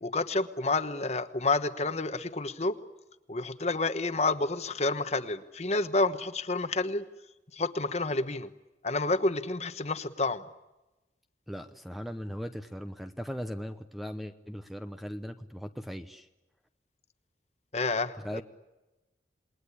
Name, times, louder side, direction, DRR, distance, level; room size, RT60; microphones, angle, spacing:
voice 1, 0.0-2.8 3.3-7.0 7.5-8.5 8.8-10.5 17.7-18.2, left 3 dB, 40° left, 10 dB, 1.2 m, -29 dB
voice 2, 11.5-16.3 18.2-18.4, equal, ahead, 8 dB, 0.9 m, -38 dB
28.0 x 21.0 x 9.9 m, 1.0 s
head